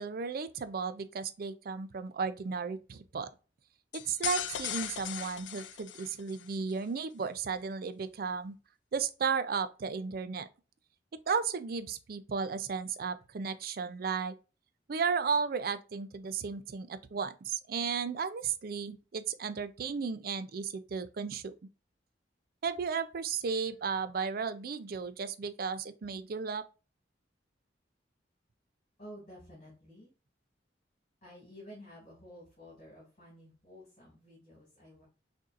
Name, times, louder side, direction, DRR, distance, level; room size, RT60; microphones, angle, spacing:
voice 1, 0.0-3.3 3.9-8.5 8.9-10.5 11.1-14.3 14.9-21.5 22.6-26.6, right 5 dB, 55° right, 0.4 m, -34 dB
sound 1, 3.9-6.5, left 11 dB, 80° left, 0.4 m, -38 dB
voice 2, 29.0-30.1 31.2-35.0, equal, 40° left, 2.4 m, -52 dB
6.4 x 2.7 x 2.5 m
head